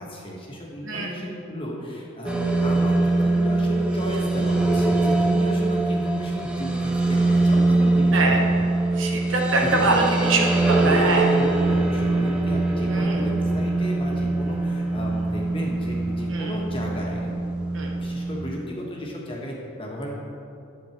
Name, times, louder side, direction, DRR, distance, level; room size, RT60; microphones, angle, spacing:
voice 1, 0.0-8.5 8.9-9.0 9.6-10.4 10.8-17.4 17.7-20.2, equal, 25° left, -2 dB, 1.6 m, -34 dB
sound 1, 2.3-18.4, right 2 dB, 5° right, 0.7 m, -22 dB
voice 2, 9.0-11.3 12.9-13.2 16.3-16.6 17.7-17.9, right 2 dB, 65° right, 0 dB, 1.3 m, -24 dB
11.0 x 7.3 x 4.5 m, 2.5 s
head